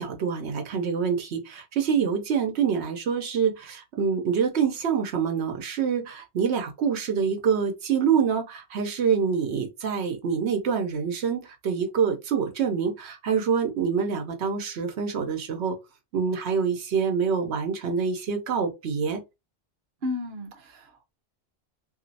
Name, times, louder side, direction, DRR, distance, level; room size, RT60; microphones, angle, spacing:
voice 1, 0.0-15.8 16.1-19.2, right 6 dB, 90° right, 1.0 m, -26 dB
voice 2, 20.0-21.1, left 2 dB, 55° right, 0.9 m, -34 dB
2.9 x 2.7 x 2.7 m
omnidirectional pair, 1.1 m